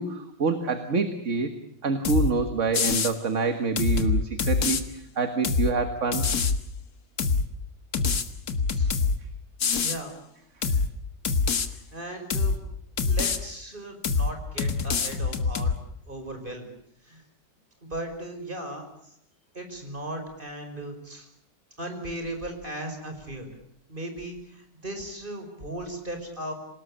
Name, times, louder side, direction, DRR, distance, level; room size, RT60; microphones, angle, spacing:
voice 1, 0.0-1.5 1.8-6.3, right 4 dB, 45° right, 8 dB, 1.9 m, -27 dB
sound 1, 2.0-2.3 2.7-3.1 3.8-4.8 5.4-5.7 6.1-6.6 7.2-7.5 7.9-9.2 9.6-10.0 10.6-10.9 11.2-11.7 12.3-12.6 13.0-13.4 14.0-14.3 14.6-15.7, left 4 dB, 60° left, 2.0 m, -24 dB
voice 2, 9.8-10.1 11.7-12.6 13.0-15.8 16.1-16.7 17.0-17.2 17.8-19.1 19.5-21.3 21.8-23.5 23.9-26.5, right 1 dB, 30° right, 5 dB, 5.7 m, -37 dB
27.0 x 18.5 x 8.7 m, 0.73 s
omnidirectional pair, 1.9 m